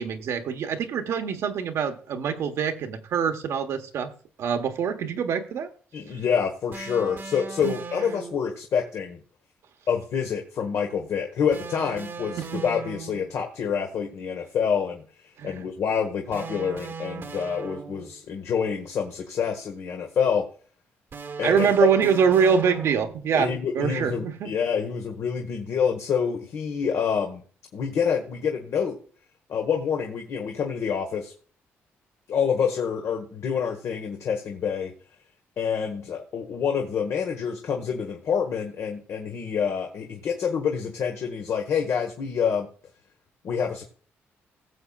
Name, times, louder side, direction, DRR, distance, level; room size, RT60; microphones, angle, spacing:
voice 1, 0.0-4.1 4.4-5.7 7.6-7.7 12.4-12.6 15.4-15.6 21.4-24.5, right 7 dB, 70° right, 1.3 m, -24 dB
voice 2, 5.9-9.2 9.9-20.5 21.4-21.7 23.3-27.4 27.7-29.0 29.5-31.3 32.3-34.9 35.6-42.7 43.4-43.8, left 7 dB, 65° left, 1.4 m, -27 dB
sound 1, 6.7-8.5 11.5-13.4 16.3-18.3 21.1-23.3, right 5 dB, 50° right, 1.3 m, -38 dB
18.0 x 7.2 x 2.4 m
cardioid pair, 75°, 5 cm